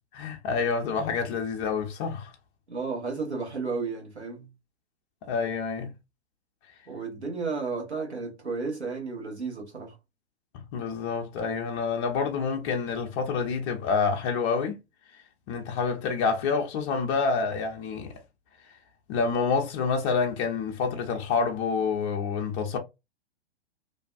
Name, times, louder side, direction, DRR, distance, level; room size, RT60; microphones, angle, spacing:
voice 1, 0.1-2.3 5.3-5.9 10.7-14.8 15.5-18.1 19.1-22.8, left 5 dB, 25° left, 0.5 m, -28 dB
voice 2, 2.7-4.5 6.9-10.0, right 4 dB, 85° right, 1.1 m, -33 dB
2.6 x 2.2 x 2.3 m
figure-of-eight pair, 105°, 32 cm